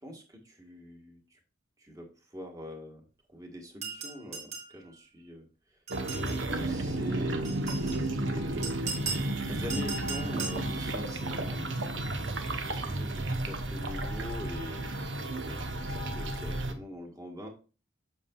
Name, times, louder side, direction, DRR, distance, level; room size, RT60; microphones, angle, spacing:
voice 1, 0.0-1.4 1.8-3.0 3.3-5.8 6.1-8.8 9.4-11.8 12.5-14.9 15.5-17.5, equal, 15° right, 2 dB, 1.5 m, -44 dB
sound 1, 3.8-4.7 5.9-6.4 7.4-8.0 8.6-9.3 9.7-10.6, right 5 dB, 35° right, 2.5 m, -37 dB
sound 2, 5.9-16.7, right 1 dB, 65° right, 1.0 m, -33 dB
8.4 x 6.9 x 2.4 m, 0.36 s
head